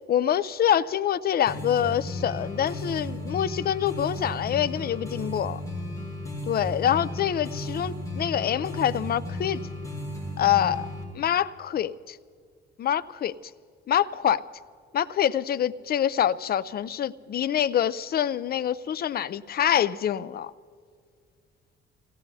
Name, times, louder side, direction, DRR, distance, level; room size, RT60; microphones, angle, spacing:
voice 1, 0.1-5.6 6.5-9.6 10.4-10.9 11.1-12.2 12.8-13.3 13.9-14.4 14.9-20.5, left 10 dB, 50° left, 15 dB, 0.5 m, -25 dB
sound 1, 1.5-11.0, left 1 dB, 15° left, 5.3 m, -34 dB
27.0 x 17.5 x 2.8 m, 2.1 s
cardioid pair, 90°, 20 cm